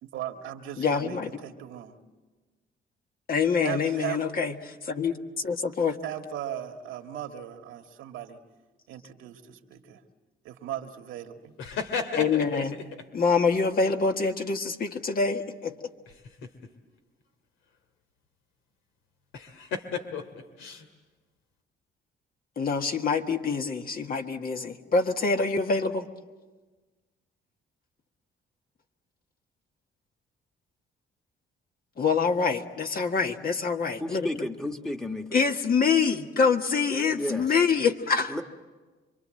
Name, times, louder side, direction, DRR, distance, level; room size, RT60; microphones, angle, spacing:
voice 1, 0.0-2.0 3.6-4.2 6.0-8.4 8.9-10.0 10.4-11.5, right 11 dB, 90° right, 1.9 m, -37 dB
voice 2, 0.8-1.3 3.3-6.0 12.1-12.8 13.1-15.7 22.6-26.1 32.0-34.3 35.3-38.4, left 5 dB, 45° left, 1.7 m, -25 dB
sound 1, 11.6-13.0 16.1-16.7 19.3-20.9, left 6 dB, 85° left, 2.2 m, -34 dB
voice 3, 34.0-35.3 37.1-37.5 38.3-38.4, left 1 dB, 5° left, 1.5 m, -32 dB
27.0 x 24.0 x 7.7 m
cardioid pair, 90°, 20 cm